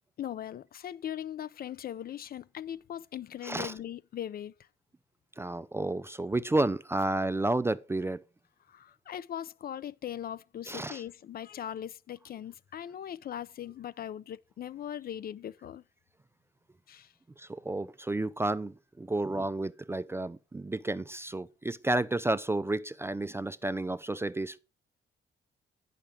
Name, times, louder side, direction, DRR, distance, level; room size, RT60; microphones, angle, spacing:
voice 1, 0.2-4.7 8.7-15.8 16.9-17.1, left 10 dB, 50° left, 0.4 m, -40 dB
voice 2, 3.4-3.7 5.4-8.2 10.7-11.0 17.4-24.6, right 2 dB, 10° right, 0.3 m, -31 dB
9.0 x 5.8 x 5.1 m
cardioid pair, 90°, 20 cm